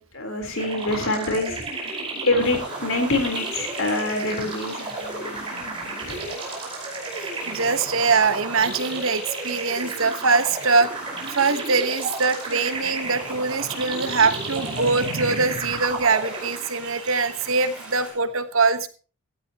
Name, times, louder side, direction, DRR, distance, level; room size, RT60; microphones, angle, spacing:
voice 1, 0.0-6.4, left 2 dB, 65° left, 4 dB, 3.8 m, -26 dB
sound 1, 0.6-17.0, right 2 dB, 25° right, 4.9 m, -33 dB
sound 2, 2.4-18.1, right 1 dB, 5° right, 5.7 m, -41 dB
voice 2, 7.2-18.9, right 4 dB, 65° right, 11 dB, 1.2 m, -23 dB
17.0 x 14.0 x 3.0 m, 0.36 s
head